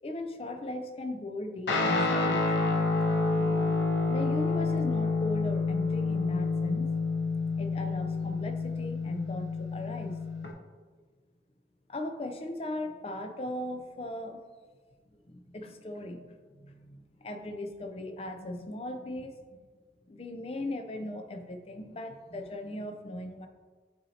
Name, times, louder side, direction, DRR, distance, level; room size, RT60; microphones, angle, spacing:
voice 1, 0.0-2.6 3.4-3.8 4.1-6.9 7.6-10.2 11.9-14.4 15.1-19.6 20.1-23.5, left 1 dB, 35° left, 6 dB, 0.4 m, -38 dB
Guitar, 1.7-10.5, left 3 dB, 85° left, 0.8 m, -28 dB
8.6 x 4.2 x 2.8 m, 1.5 s
head